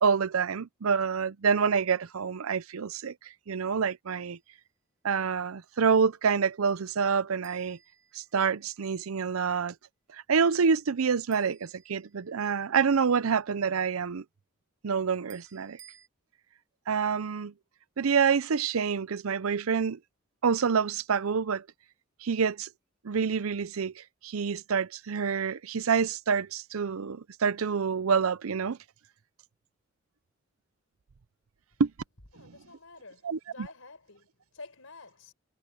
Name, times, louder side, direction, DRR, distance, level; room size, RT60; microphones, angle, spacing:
voice 1, 0.0-3.1 3.5-4.4 5.0-7.8 8.1-9.7 10.1-14.2 14.8-15.8 16.9-17.5 18.0-20.0 20.4-21.6 22.2-22.7 23.0-28.8 31.8-31.9 33.2-33.7, right 6 dB, 90° right, 0.6 m, -27 dB
sound 1, 4.1-4.5 7.4-8.8 11.3-12.6 15.3-16.1, right 10 dB, 65° right, 5.3 m, -58 dB
voice 2, 32.3-35.3, left 3 dB, 80° left, 4.6 m, -49 dB
head